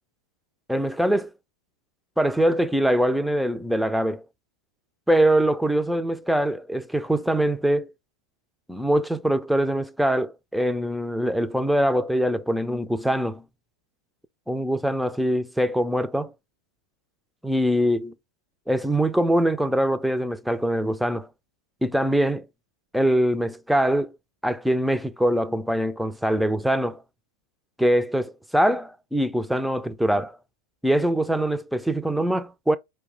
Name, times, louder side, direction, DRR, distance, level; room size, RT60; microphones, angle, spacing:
voice 1, 0.7-1.3 2.2-4.2 5.1-7.9 8.7-13.4 14.5-16.3 17.4-18.1 18.7-21.3 21.8-22.5 22.9-24.1 24.4-27.0 27.8-30.4 30.8-32.8, right 1 dB, ahead, 0.3 m, -23 dB
4.6 x 2.1 x 3.2 m
figure-of-eight pair, 90°, 0 cm